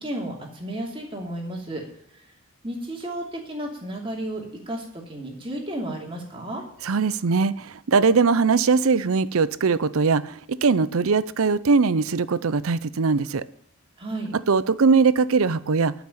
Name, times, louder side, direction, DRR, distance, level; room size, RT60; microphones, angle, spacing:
voice 1, 0.0-1.8 2.1-2.3 2.6-6.6 14.0-14.3, right 1 dB, 25° right, 0 dB, 2.8 m, -33 dB
voice 2, 6.8-13.4 14.5-15.9, right 4 dB, 75° right, 17 dB, 0.6 m, -21 dB
11.5 x 6.0 x 8.6 m, 0.65 s
head